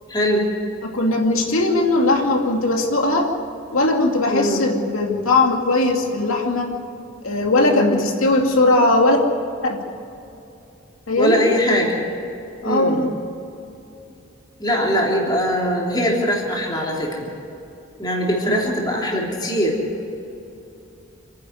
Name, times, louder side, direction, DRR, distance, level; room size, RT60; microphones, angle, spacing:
voice 1, 0.1-0.5 4.3-4.6 7.6-8.1 11.2-12.0 12.6-13.1 14.6-17.3 18.0-19.8, equal, 20° left, -2 dB, 3.4 m, -21 dB
voice 2, 0.8-3.3 3.7-6.7 7.2-9.2 9.6-9.8 11.1-11.4 12.6-13.1 18.4-18.7, left 2 dB, 90° left, 1 dB, 2.5 m, -19 dB
27.5 x 10.5 x 9.7 m, 2.7 s
head